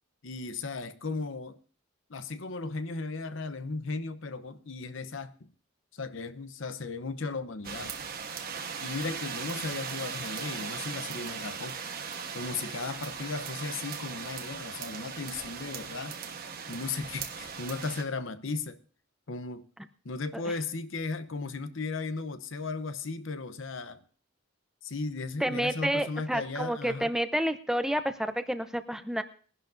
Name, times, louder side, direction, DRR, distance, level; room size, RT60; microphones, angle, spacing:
voice 1, 0.2-1.6 2.1-5.5 5.9-8.0 8.8-11.8 12.3-16.2 16.7-18.8 19.3-19.7 20.0-24.0 24.8-27.1, left 3 dB, 65° left, 0.8 m, -36 dB
sound 1, 7.6-18.0, right 6 dB, 45° right, 1.2 m, -38 dB
voice 2, 25.4-29.2, equal, ahead, 0.6 m, -29 dB
21.0 x 11.0 x 2.6 m
head